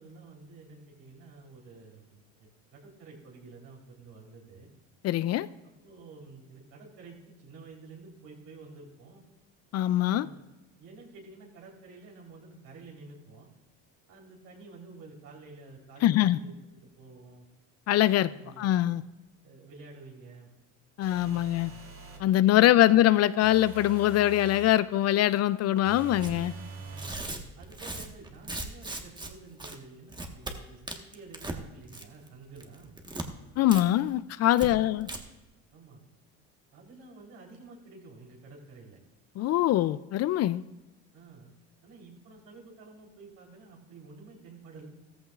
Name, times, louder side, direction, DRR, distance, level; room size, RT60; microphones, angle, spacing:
voice 1, 0.0-4.7 5.6-9.2 10.1-10.4 10.8-13.5 14.1-17.5 18.2-18.9 19.4-20.5 21.2-22.0 22.3-23.1 26.8-27.2 27.6-33.0 34.5-35.2 35.7-36.0 36.7-39.0 41.1-41.5 41.8-44.9, right 3 dB, 65° right, -1 dB, 3.6 m, -50 dB
voice 2, 5.0-5.5 9.7-10.3 16.0-16.4 17.9-18.3 18.6-19.0 21.0-21.7 22.2-26.5 33.6-35.1 39.4-40.6, left 13 dB, 45° left, 16 dB, 0.4 m, -23 dB
sound 1, 21.0-22.3 23.4-24.8 25.8-27.3, right 6 dB, 35° right, 1.9 m, -44 dB
Tearing, 26.2-26.4 26.9-29.3 29.6-29.8 30.1-30.5 30.9-31.6 31.9-32.3 32.6-33.3 33.7-33.8 34.1-34.2 34.6-34.7 35.0-35.2, right 2 dB, 10° right, 1.3 m, -38 dB
14.0 x 14.0 x 2.4 m, 1.1 s
supercardioid pair, 90°, 35 cm